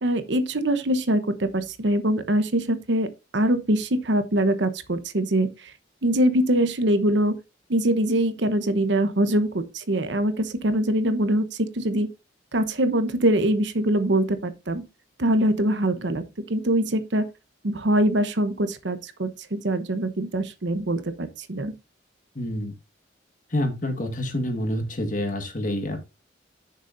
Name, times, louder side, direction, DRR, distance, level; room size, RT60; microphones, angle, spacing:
voice 1, 0.0-3.1 3.3-5.7 6.0-7.3 7.7-12.1 12.5-14.8 15.2-16.2 16.5-17.3 17.6-21.7, right 1 dB, 70° right, 0.9 m, -23 dB
voice 2, 22.3-22.7 23.5-26.0, left 1 dB, 45° left, 1.7 m, -27 dB
10.0 x 6.7 x 2.6 m
head